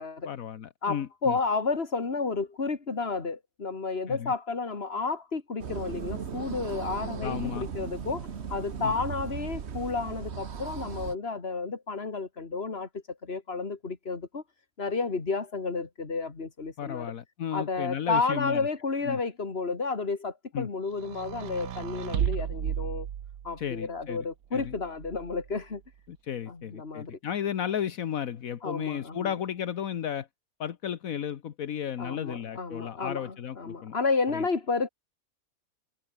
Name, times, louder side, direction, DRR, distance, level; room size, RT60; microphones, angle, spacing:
voice 1, 0.2-1.4 4.1-4.3 7.2-7.7 8.8-8.9 16.8-18.7 19.0-19.2 20.5-20.7 23.6-24.2 24.5-24.7 26.1-30.3 30.6-33.9 34.3-34.4, left 9 dB, 75° left, 1.5 m, -34 dB
voice 2, 0.8-14.4 14.8-17.1 17.5-23.1 23.4-25.8 26.5-27.2 28.6-29.3 32.0-34.9, left 4 dB, 45° left, 2.5 m, -31 dB
sound 1, 5.6-11.1, right 6 dB, 50° right, 1.4 m, -37 dB
sound 2, 20.9-23.7 24.6-25.5, right 9 dB, 80° right, 1.5 m, -33 dB
omnidirectional pair, 1.5 m